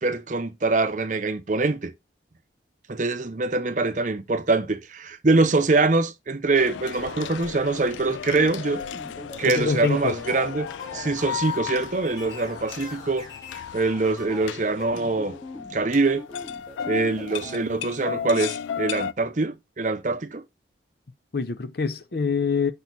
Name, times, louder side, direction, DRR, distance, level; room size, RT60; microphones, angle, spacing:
voice 1, 0.0-1.9 2.9-8.8 9.4-13.3 13.7-15.4 15.7-16.2 16.9-20.4, right 3 dB, 40° right, 0.7 m, -24 dB
sound 1, 6.6-19.1, left 8 dB, 85° left, 0.3 m, -35 dB
sound 2, 7.9-17.7, left 2 dB, 20° left, 2.9 m, -42 dB
voice 2, 9.5-10.2 21.3-22.7, left 5 dB, 55° left, 0.7 m, -25 dB
6.3 x 5.4 x 3.9 m
head